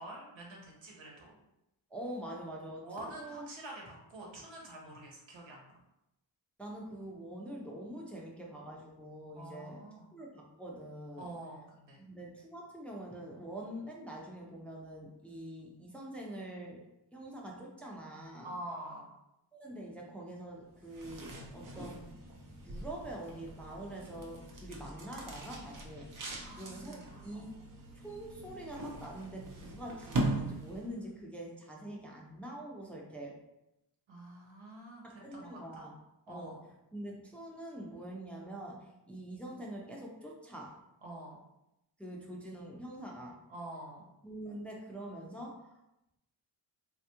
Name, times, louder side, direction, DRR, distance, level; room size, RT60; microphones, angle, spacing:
voice 1, 0.0-1.4 2.8-5.7 9.3-10.1 11.2-12.0 18.4-19.1 26.3-27.6 34.1-35.9 36.3-36.6 41.0-41.4 43.5-44.1, right 1 dB, 75° right, -1 dB, 1.0 m, -47 dB
voice 2, 1.9-3.5 6.6-9.8 10.1-11.3 12.0-16.8 17.1-18.5 19.5-22.2 22.6-27.6 27.9-33.4 35.0-35.9 36.3-36.6 36.9-40.8 42.0-43.4 44.2-45.8, right 1 dB, 5° left, -2 dB, 0.5 m, -45 dB
sound 1, 20.7-31.1, right 2 dB, 45° right, 0.6 m, -41 dB
3.4 x 2.3 x 2.8 m, 0.88 s
wide cardioid pair, 75°, 47 cm